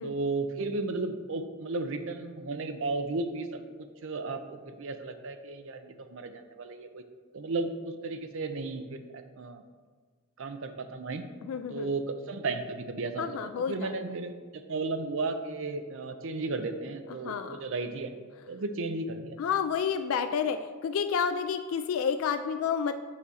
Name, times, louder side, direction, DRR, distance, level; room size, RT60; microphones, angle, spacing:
voice 1, 0.0-7.0 7.3-9.6 10.4-11.3 11.7-18.1 18.5-19.4, right 3 dB, 60° right, 8 dB, 0.6 m, -34 dB
voice 2, 11.4-11.9 13.2-13.9 17.2-17.6 19.4-22.9, left 7 dB, 65° left, 8 dB, 0.3 m, -30 dB
5.8 x 4.1 x 6.2 m, 1.5 s
head